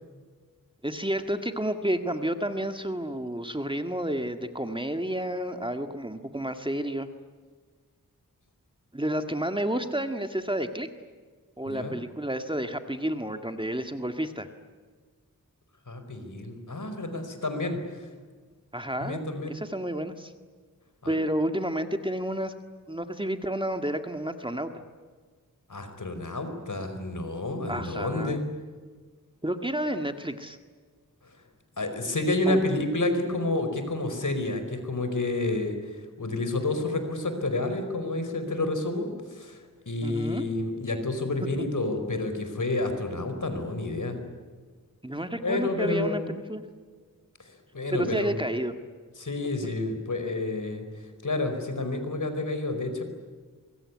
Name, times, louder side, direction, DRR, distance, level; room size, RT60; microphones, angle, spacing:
voice 1, 0.8-7.1 8.9-10.9 11.6-14.5 18.7-20.3 21.1-22.5 22.9-24.7 27.7-28.4 29.4-30.6 32.5-32.6 40.0-40.5 45.0-46.6 47.9-48.7, right 1 dB, 15° right, 7 dB, 1.9 m, -30 dB
voice 2, 11.7-12.0 15.9-18.1 19.0-19.6 21.0-21.2 25.7-28.4 31.8-44.2 45.4-46.3 47.4-48.3 49.2-53.0, left 2 dB, 60° left, 7 dB, 4.9 m, -30 dB
24.5 x 22.0 x 9.7 m, 1.5 s
wide cardioid pair, 55°, 34 cm